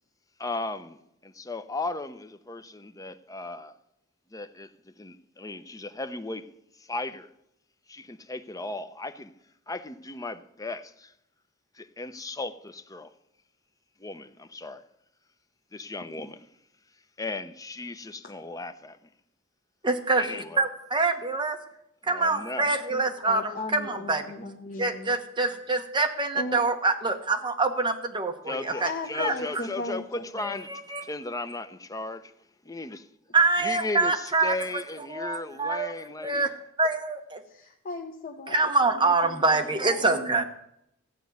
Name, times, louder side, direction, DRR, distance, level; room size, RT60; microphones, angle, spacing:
voice 1, 0.4-3.7 4.3-6.5 6.9-7.3 7.9-9.3 9.7-11.1 11.8-13.1 14.0-14.8 15.7-16.4 17.2-19.0 20.2-20.7 22.0-22.7 28.5-32.3 32.6-33.1 33.6-36.5, left 2 dB, 15° left, 0.6 m, -36 dB
voice 2, 19.8-21.6 22.1-24.2 24.8-29.3 30.4-31.0 33.3-34.5 35.1-35.9 36.2-36.5 36.8-37.4 38.5-40.4, right 3 dB, 25° right, 1.2 m, -25 dB
voice 3, 22.9-25.1 26.3-26.6 28.6-30.6 36.4-36.5 37.5-40.4, left 3 dB, 45° left, 0.9 m, -37 dB
14.0 x 5.3 x 9.3 m
head